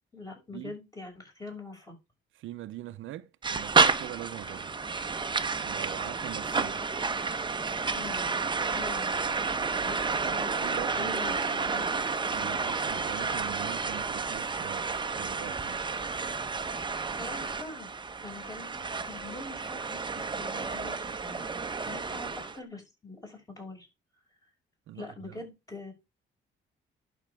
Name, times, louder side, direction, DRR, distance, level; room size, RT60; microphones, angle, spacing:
voice 1, 0.1-1.9 7.9-8.4 8.7-9.2 9.8-10.0 10.3-11.9 17.1-17.9 18.2-23.9 24.9-25.9, left 2 dB, 15° left, 6.1 m, -43 dB
voice 2, 2.4-4.8 5.6-6.8 10.2-11.1 12.3-15.8 24.9-25.4, right 14 dB, 80° right, 0.8 m, -42 dB
sound 1, 3.4-22.6, right 4 dB, 25° right, 0.9 m, -30 dB
11.5 x 6.4 x 3.5 m
cardioid pair, 90°, 20 cm